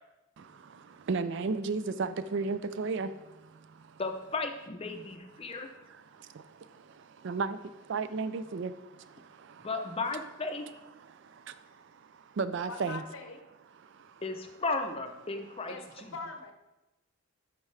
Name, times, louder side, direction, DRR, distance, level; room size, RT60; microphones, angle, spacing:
voice 1, 0.4-4.0 5.9-9.7 11.0-13.0 13.8-14.2, right 4 dB, 55° right, 0.4 m, -36 dB
voice 2, 4.0-5.7 9.6-10.7 14.2-16.1, left 3 dB, 25° left, 0.6 m, -35 dB
voice 3, 12.7-13.4 15.7-15.8 16.1-16.5, left 4 dB, 70° left, 0.8 m, -41 dB
11.5 x 4.7 x 3.3 m
head